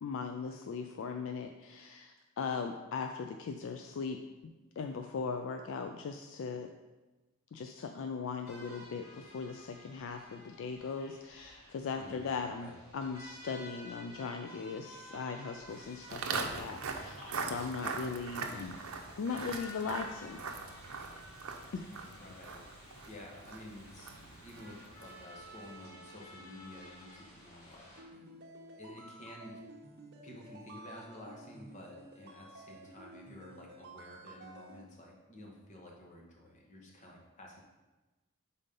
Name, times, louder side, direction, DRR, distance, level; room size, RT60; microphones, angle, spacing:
voice 1, 0.0-4.2 4.8-6.7 7.5-18.8 19.2-20.4 21.7-21.9, left 5 dB, 65° left, 5 dB, 0.4 m, -39 dB
sound 1, 8.5-28.0, left 1 dB, 80° left, 2.0 m, -53 dB
voice 2, 11.9-12.8 18.4-18.6 22.2-22.7 23.1-28.2 28.8-29.6 30.2-37.6, left 1 dB, 35° left, -1 dB, 1.2 m, -51 dB
Walk footsteps, 16.1-25.3, right 4 dB, 80° right, 0.6 m, -41 dB
sound 2, 28.0-34.8, right 1 dB, 50° right, 1.0 m, -52 dB
5.3 x 4.1 x 5.2 m, 1.2 s
head